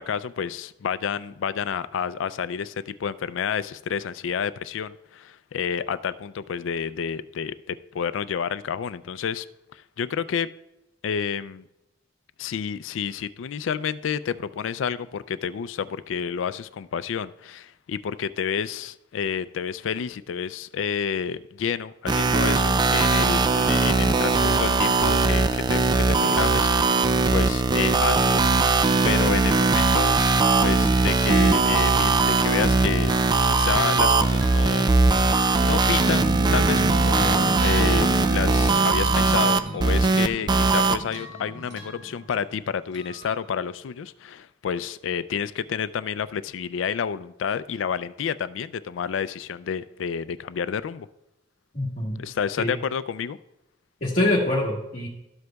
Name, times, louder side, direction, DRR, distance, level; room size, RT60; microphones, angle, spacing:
voice 1, 0.0-9.5 9.7-10.5 11.0-11.6 12.4-28.4 29.0-30.2 30.6-33.1 33.4-34.9 35.2-51.1 52.2-53.4, left 7 dB, 90° left, 0.4 m, -30 dB
sound 1, 22.1-41.0, right 3 dB, 25° right, 0.3 m, -20 dB
sound 2, 36.1-42.6, right 1 dB, 40° right, 0.7 m, -33 dB
sound 3, 39.3-42.6 42.9-43.4, equal, 80° right, 2.4 m, -46 dB
voice 2, 51.7-52.2 52.6-52.8 54.0-55.1, left 1 dB, 40° left, 1.4 m, -24 dB
12.5 x 7.9 x 2.3 m
head